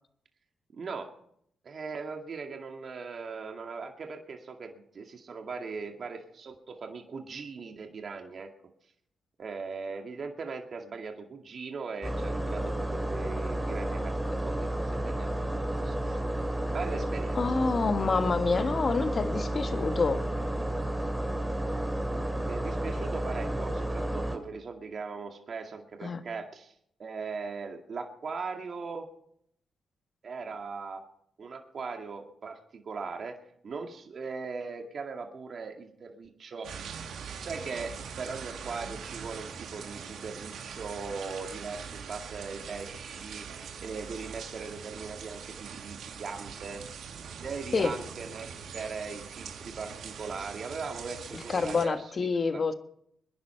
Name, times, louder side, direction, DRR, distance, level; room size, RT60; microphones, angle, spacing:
voice 1, 0.7-1.1 1.6-8.5 9.4-15.3 15.8-16.2 16.7-17.4 22.4-26.7 27.0-29.1 30.2-31.0 31.4-33.4 33.6-36.7 37.4-45.4 45.7-46.8 47.4-48.5 48.7-52.1 52.5-52.6, right 4 dB, 55° right, 3 dB, 2.2 m, -39 dB
sound 1, 12.0-24.4, right 1 dB, 10° right, 3.0 m, -31 dB
voice 2, 17.3-20.2 26.0-26.2 47.7-47.9 51.3-52.7, left 4 dB, 45° left, 9 dB, 1.5 m, -27 dB
sound 2, 36.6-51.9, right 6 dB, 75° right, 2.0 m, -42 dB
23.5 x 10.5 x 4.5 m, 0.68 s
supercardioid pair, 60°, 0 cm